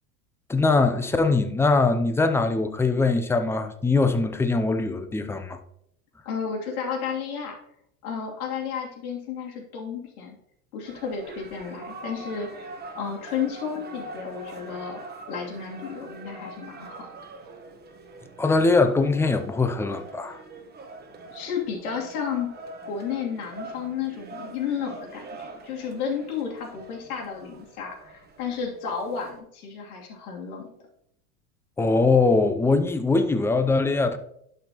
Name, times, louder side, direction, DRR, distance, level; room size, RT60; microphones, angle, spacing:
voice 1, 0.5-5.6 18.4-20.4 31.8-34.2, left 3 dB, 5° left, 0.5 m, -22 dB
voice 2, 6.2-7.6 8.0-10.4 10.7-15.0 15.3-17.1 21.3-22.5 22.9-30.7, left 6 dB, 75° left, 2.9 m, -32 dB
sound 1, 10.8-29.4, right 2 dB, 20° right, 1.1 m, -43 dB
11.5 x 5.6 x 2.9 m
supercardioid pair, 115°, 44 cm